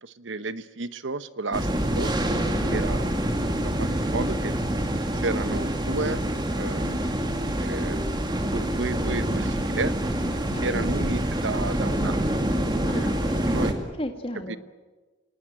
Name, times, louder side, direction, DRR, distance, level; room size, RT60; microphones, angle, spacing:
voice 1, 0.0-1.7 1.9-2.1 2.7-3.1 3.6-4.5 5.2-6.2 6.5-7.0 7.5-8.0 8.5-9.9 10.6-13.7 14.5-14.6, right 3 dB, 70° right, 14 dB, 1.0 m, -32 dB
sound 1, 1.5-13.7, right 1 dB, 20° right, 2.3 m, -26 dB
voice 2, 2.5-2.8 6.8-7.0 10.5-10.9 12.9-14.6, left 1 dB, 30° left, 5 dB, 2.1 m, -36 dB
26.5 x 19.0 x 9.0 m, 1.2 s
head